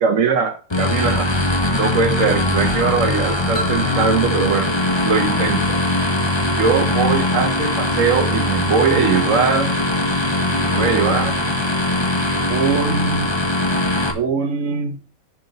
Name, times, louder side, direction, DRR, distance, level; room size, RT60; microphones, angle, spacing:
voice 1, 0.0-1.3 1.7-4.7 5.0-5.8 6.6-9.7 10.7-11.4 12.5-13.3 14.1-15.0, right 5 dB, 65° right, 4 dB, 1.3 m, -20 dB
sound 1, 0.7-14.1, left 2 dB, 20° left, 1.4 m, -20 dB
sound 2, 3.5-6.2, equal, 75° left, 3.8 m, -34 dB
10.5 x 6.2 x 4.0 m, 0.39 s
omnidirectional pair, 1.5 m